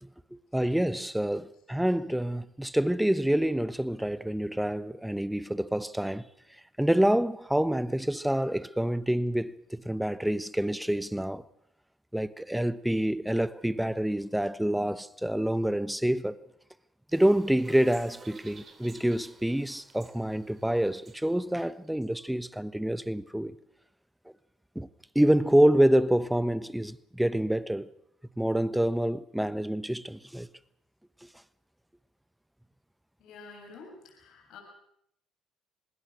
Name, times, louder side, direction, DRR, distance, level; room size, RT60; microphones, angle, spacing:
voice 1, 0.0-6.3 6.8-11.4 12.1-16.4 17.1-23.6 24.7-24.9 25.1-27.9 28.4-30.5 31.2-31.3, right 1 dB, 5° right, 1.1 m, -27 dB
sound 1, 17.1-22.1, right 5 dB, 40° right, 3.7 m, -53 dB
voice 2, 33.2-34.6, left 4 dB, 70° left, 6.9 m, -49 dB
26.0 x 20.0 x 6.5 m
supercardioid pair, 70°, 0 cm